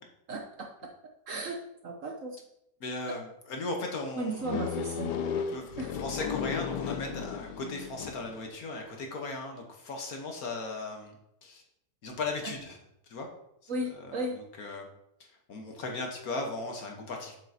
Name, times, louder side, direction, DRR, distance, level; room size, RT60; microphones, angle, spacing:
voice 1, 0.3-0.7 1.3-2.4 4.2-5.2 5.8-5.9 12.4-12.5 13.7-14.4, right 1 dB, 55° right, 2 dB, 1.0 m, -35 dB
voice 2, 2.8-4.5 5.5-11.2 11.4-11.6 12.0-12.8 13.1-13.3 13.6-14.9 15.5-17.4, left 3 dB, 60° left, 2 dB, 1.5 m, -37 dB
sound 1, 4.4-8.5, left 7 dB, 75° left, 1.2 m, -34 dB
7.6 x 7.2 x 2.8 m, 0.78 s
omnidirectional pair, 1.9 m